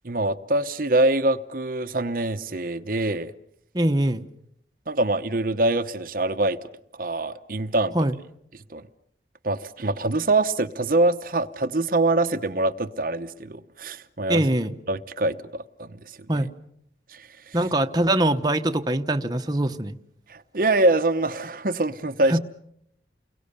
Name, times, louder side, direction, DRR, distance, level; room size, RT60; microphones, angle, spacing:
voice 1, 0.0-3.3 4.9-6.6 6.9-7.9 8.7-8.8 9.4-14.4 14.9-16.2 17.1-17.6 20.3-22.4, right 2 dB, 50° right, 0.9 m, -24 dB
voice 2, 3.7-4.3 7.9-8.2 14.3-14.8 16.3-16.5 17.5-20.0 22.3-22.4, right 1 dB, 20° right, 1.0 m, -23 dB
30.0 x 22.5 x 6.8 m
head